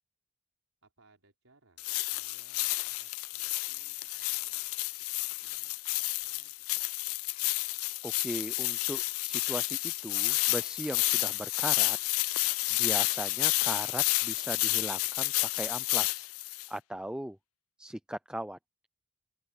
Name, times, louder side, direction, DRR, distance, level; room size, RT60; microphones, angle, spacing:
voice 1, 0.8-1.9 2.1-6.7 13.5-13.8, right 2 dB, 70° right, 4.6 m, -67 dB
sound 1, 1.8-16.7, left 20 dB, 70° left, 0.4 m, -30 dB
voice 2, 8.0-12.0 12.8-16.3 16.7-17.4 17.8-18.6, right 1 dB, 5° right, 0.5 m, -38 dB
open air
head